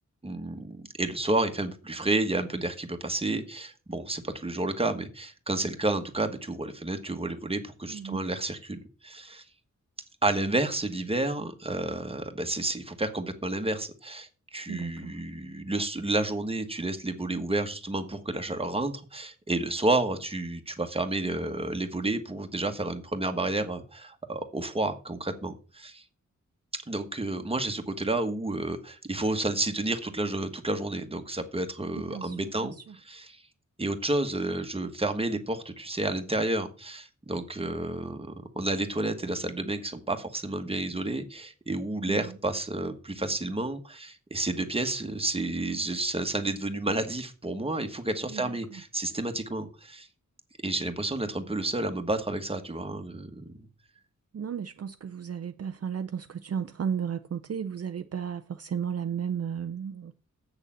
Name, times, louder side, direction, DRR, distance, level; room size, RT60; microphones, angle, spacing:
voice 1, 0.2-9.4 10.2-26.0 26.9-32.7 33.1-33.4 33.8-50.1 50.6-53.5, right 2 dB, 20° right, 1.3 m, -30 dB
voice 2, 7.9-8.2 14.7-15.1 32.1-32.9 42.1-42.3 48.3-48.8 54.3-60.1, right 7 dB, 55° right, 0.6 m, -34 dB
8.0 x 6.6 x 7.3 m
wide cardioid pair, 135°, 30 cm